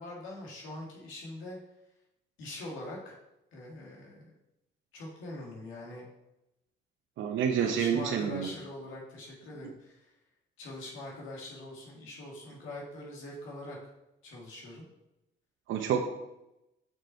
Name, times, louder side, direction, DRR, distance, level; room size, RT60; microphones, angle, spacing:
voice 1, 0.0-1.6 2.4-3.2 3.5-4.3 4.9-6.1 7.6-10.1 10.6-13.9 14.2-14.9, left 1 dB, 90° left, -2 dB, 2.1 m, -43 dB
voice 2, 7.2-8.5 15.7-16.0, right 8 dB, 80° right, 3 dB, 0.8 m, -28 dB
6.1 x 5.3 x 4.4 m, 0.89 s
cardioid pair, 90°, 20 cm